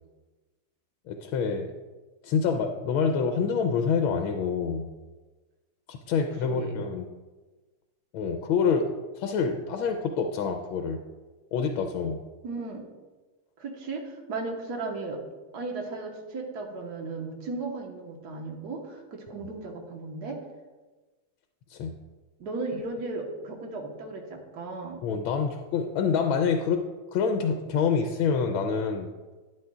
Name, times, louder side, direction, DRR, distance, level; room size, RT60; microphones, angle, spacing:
voice 1, 1.1-1.7 2.2-4.9 5.9-7.1 8.1-8.9 9.2-11.0 11.5-12.2 21.7-21.9 25.0-26.8 27.1-29.1, left 5 dB, 85° left, 5 dB, 1.5 m, -26 dB
voice 2, 6.4-6.8 12.4-12.8 13.6-15.2 15.5-20.4 22.4-25.0, right 3 dB, 55° right, 1 dB, 1.7 m, -35 dB
12.5 x 10.5 x 2.4 m, 1.3 s
omnidirectional pair, 2.2 m